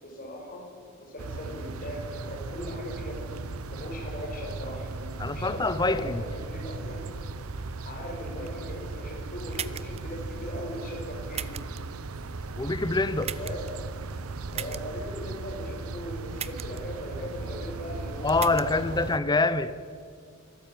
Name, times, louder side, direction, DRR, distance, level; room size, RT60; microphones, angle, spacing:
voice 1, 0.0-3.4 3.7-4.9 5.3-7.1 7.8-11.6 13.1-13.6 14.5-19.1, equal, 40° left, 6.1 m, -39 dB
sound 1, 1.2-19.2, right 3 dB, 80° right, 0.8 m, -37 dB
voice 2, 5.2-6.2 12.6-13.3 18.2-19.7, left 3 dB, 20° left, 0.7 m, -25 dB
sound 2, 9.5-10.0 11.3-11.8 13.2-13.7 14.5-14.8 16.4-16.8 18.3-18.7, right 9 dB, 30° right, 0.6 m, -36 dB
23.5 x 14.0 x 9.2 m
head